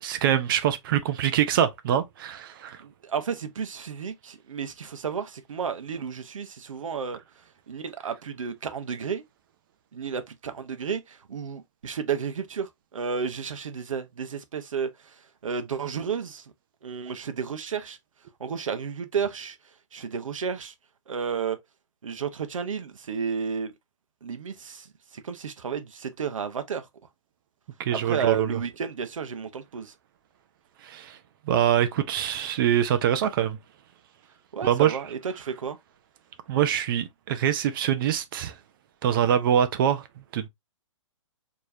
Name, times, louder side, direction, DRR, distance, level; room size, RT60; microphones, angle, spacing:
voice 1, 0.0-2.8 27.8-28.6 30.8-31.2 31.5-33.6 34.6-35.0 36.5-38.5 39.0-40.0 40.3-40.5, right 10 dB, 40° right, 0.7 m, -24 dB
voice 2, 2.8-7.2 7.7-9.2 9.9-14.9 15.4-16.5 16.8-18.0 18.4-19.6 19.9-20.7 21.1-21.6 22.0-23.7 24.2-24.9 25.1-26.9 28.0-29.9 34.5-35.8, right 6 dB, 75° right, 0.9 m, -32 dB
4.7 x 3.1 x 2.7 m
hypercardioid pair, 140°, 17 cm